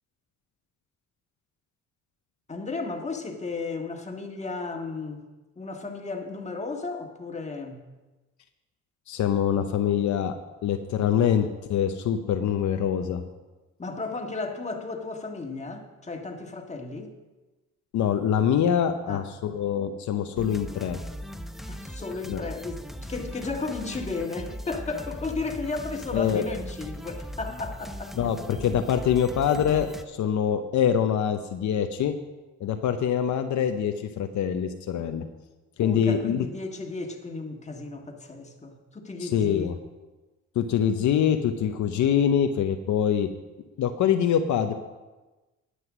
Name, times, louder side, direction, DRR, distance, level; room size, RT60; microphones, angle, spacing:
voice 1, 2.5-5.2 5.6-7.8 13.8-17.1 19.1-19.2 21.7-22.8 23.1-28.1 35.8-39.8, left 3 dB, 20° left, 3 dB, 1.6 m, -34 dB
voice 2, 9.1-10.3 10.6-13.2 17.9-21.0 22.3-22.4 26.1-26.4 28.2-32.1 32.6-35.2 35.8-36.4 39.2-39.7 40.5-43.3 43.8-44.7, left 9 dB, 70° left, 6 dB, 0.8 m, -24 dB
sound 1, 20.4-30.0, equal, ahead, 0.7 m, -39 dB
11.0 x 7.9 x 6.1 m, 1.1 s
cardioid pair, 90°, 30 cm